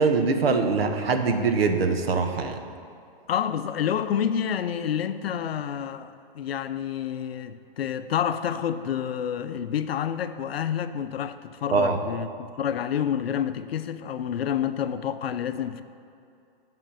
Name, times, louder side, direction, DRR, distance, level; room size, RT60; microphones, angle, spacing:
voice 1, 0.0-2.6 11.7-12.0, right 4 dB, 80° right, 1.1 m, -23 dB
voice 2, 3.3-15.8, left 9 dB, 80° left, 0.6 m, -28 dB
7.7 x 5.3 x 7.5 m
hypercardioid pair, 170°, 30 cm